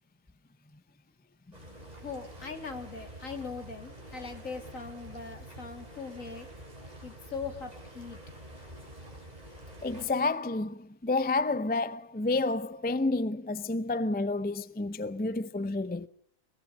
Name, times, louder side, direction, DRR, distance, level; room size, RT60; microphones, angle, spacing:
sound 1, 1.5-10.1, right 1 dB, 30° right, 6.7 m, -47 dB
voice 1, 2.0-6.5 7.0-8.2, left 4 dB, 70° left, 3.1 m, -40 dB
voice 2, 9.8-16.1, left 3 dB, 10° left, 0.5 m, -30 dB
22.0 x 19.5 x 7.1 m
omnidirectional pair, 1.5 m